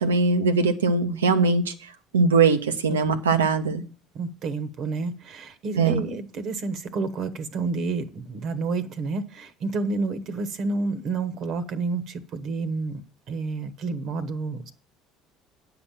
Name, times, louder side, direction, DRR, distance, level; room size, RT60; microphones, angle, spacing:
voice 1, 0.0-1.7 2.1-3.8 5.8-6.0, right 4 dB, 85° right, 9 dB, 0.9 m, -21 dB
voice 2, 4.1-13.0 13.3-14.7, right 3 dB, 55° right, 13 dB, 1.2 m, -29 dB
9.6 x 6.0 x 7.4 m, 0.36 s
hypercardioid pair, 60°, 0 cm